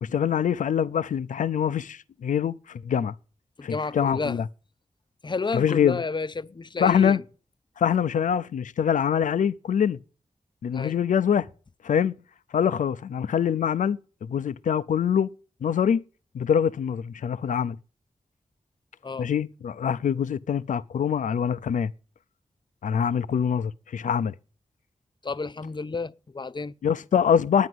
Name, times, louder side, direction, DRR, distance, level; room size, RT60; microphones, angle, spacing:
voice 1, 0.0-3.1 3.6-4.4 5.5-6.0 6.8-7.2 7.8-10.0 10.6-11.5 11.8-12.1 12.5-15.3 15.6-16.0 16.3-17.8 19.2-21.9 22.8-24.3 26.8-27.7, left 8 dB, 85° left, 0.5 m, -24 dB
voice 2, 3.6-4.4 5.2-7.2 10.7-10.9 19.0-19.3 25.2-26.7, left 4 dB, 35° left, 0.6 m, -31 dB
9.6 x 9.4 x 7.9 m
cardioid pair, 50°, 13 cm